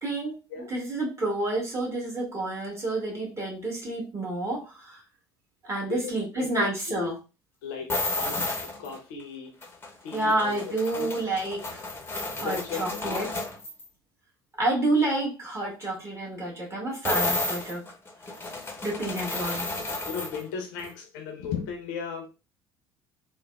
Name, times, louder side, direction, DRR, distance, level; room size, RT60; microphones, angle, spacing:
voice 1, 0.0-0.4 0.7-5.0 5.6-7.1 10.1-11.6 12.4-13.3 14.6-17.8 18.8-19.7, right 2 dB, 25° right, 1.5 m, -29 dB
voice 2, 5.9-7.1 7.6-9.5 10.0-11.1 12.4-13.4 20.1-22.3, left 6 dB, 65° left, 0.6 m, -36 dB
sound 1, 7.9-9.0 9.6-13.9 17.0-20.4 20.8-20.9, left 2 dB, 20° left, 0.7 m, -32 dB
3.2 x 2.1 x 2.2 m
figure-of-eight pair, 60°, 12 cm